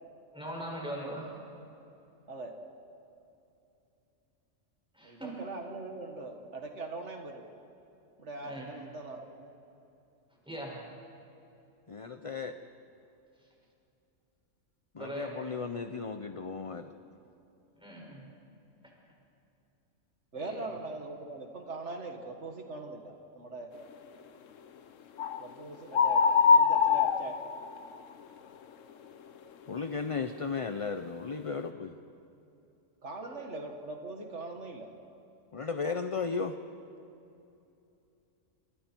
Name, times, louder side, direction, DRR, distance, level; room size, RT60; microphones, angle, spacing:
voice 1, 0.3-1.3 4.9-5.3 8.4-8.7 10.4-10.8 15.0-15.3 17.8-18.2 20.3-20.7 33.2-33.4, right 1 dB, 5° right, -3 dB, 6.1 m, -40 dB
voice 2, 5.0-7.4 8.2-9.5 20.3-23.7 25.4-26.3 26.5-27.4 33.0-34.9, right 3 dB, 65° right, 3 dB, 1.9 m, -41 dB
voice 3, 11.9-12.6 14.9-16.9 29.7-31.9 35.5-36.6, left 5 dB, 35° left, 8 dB, 0.7 m, -35 dB
sound 1, 25.2-25.5 25.9-28.0, left 5 dB, 90° left, 1.2 m, -23 dB
28.0 x 27.0 x 4.6 m, 2.8 s
omnidirectional pair, 1.3 m